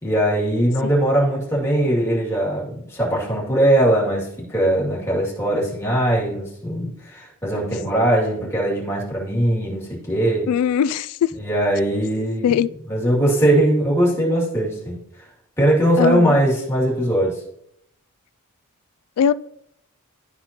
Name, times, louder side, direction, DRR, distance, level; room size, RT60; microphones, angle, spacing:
voice 1, 0.0-10.5 11.4-12.6 12.9-15.0 15.6-17.4, right 1 dB, 10° left, 2.4 m, -20 dB
voice 2, 10.5-11.3 12.4-12.7 16.0-16.3 19.2-19.3, left 8 dB, 90° left, 0.3 m, -19 dB
12.0 x 4.2 x 2.9 m
head